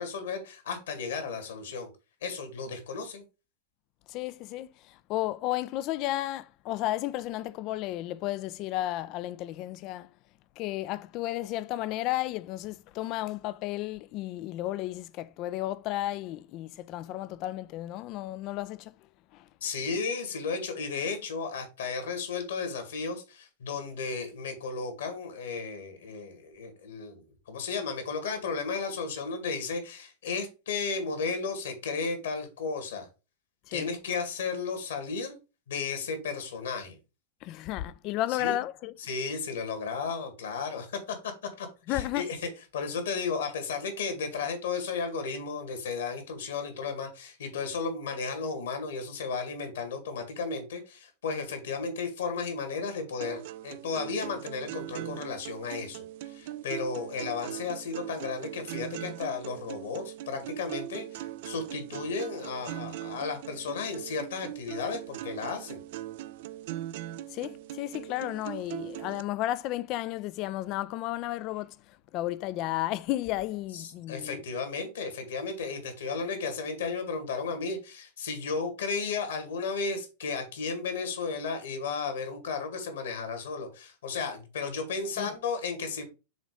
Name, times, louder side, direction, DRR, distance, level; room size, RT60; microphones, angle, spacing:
voice 1, 0.0-1.9 2.2-3.2 19.6-33.1 33.7-35.4 35.7-37.0 38.4-38.6 39.0-41.3 41.6-42.4 42.7-65.8 73.7-86.0, left 4 dB, 65° left, 2.0 m, -34 dB
voice 2, 4.1-10.1 10.6-18.9 19.3-19.5 33.7-33.9 37.4-38.9 41.9-42.3 67.3-74.4 85.2-85.3, left 15 dB, 40° left, 0.4 m, -33 dB
sound 1, 53.2-69.2, right 14 dB, 50° right, 0.4 m, -40 dB
6.4 x 4.1 x 4.8 m
figure-of-eight pair, 90°, 0 cm